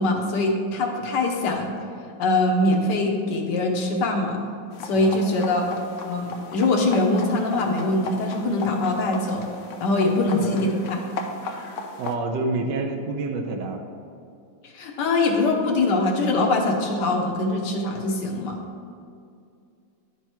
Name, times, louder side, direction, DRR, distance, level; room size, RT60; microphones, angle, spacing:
voice 1, 0.0-1.7 2.2-4.4 4.8-5.7 6.0-9.5 9.8-11.0 14.6-18.6, left 2 dB, 65° left, 1 dB, 1.4 m, -23 dB
sound 1, 4.7-12.1, left 3 dB, 90° left, 0.6 m, -36 dB
voice 2, 4.9-5.3 10.3-10.6 12.0-13.8, right 3 dB, 70° right, 3 dB, 1.3 m, -28 dB
10.5 x 4.7 x 4.4 m, 2.4 s
omnidirectional pair, 2.1 m